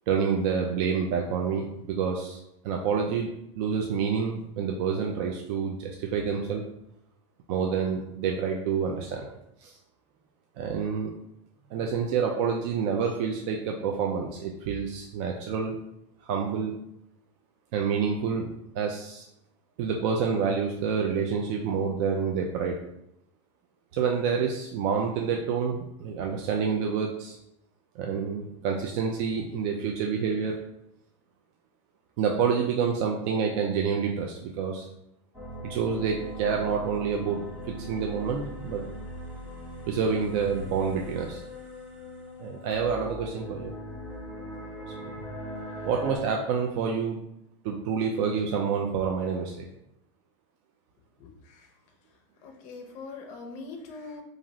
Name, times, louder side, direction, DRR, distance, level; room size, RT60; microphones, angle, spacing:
voice 1, 0.1-3.3 3.6-6.6 7.5-9.3 9.6-9.8 10.6-11.1 11.7-15.8 16.2-16.8 17.7-18.5 18.7-19.3 19.8-22.8 23.9-27.4 28.0-30.6 32.2-34.9 35.6-38.8 39.9-41.4 42.4-43.7 45.0-45.1 45.8-47.2 47.6-49.7, right 6 dB, 60° right, 1 dB, 0.4 m, -28 dB
sound 1, 35.3-46.2, equal, 10° right, 0.7 m, -40 dB
voice 2, 52.4-54.2, left 3 dB, 50° left, 3 dB, 0.5 m, -41 dB
2.5 x 2.5 x 3.0 m, 0.80 s
supercardioid pair, 115°, 16 cm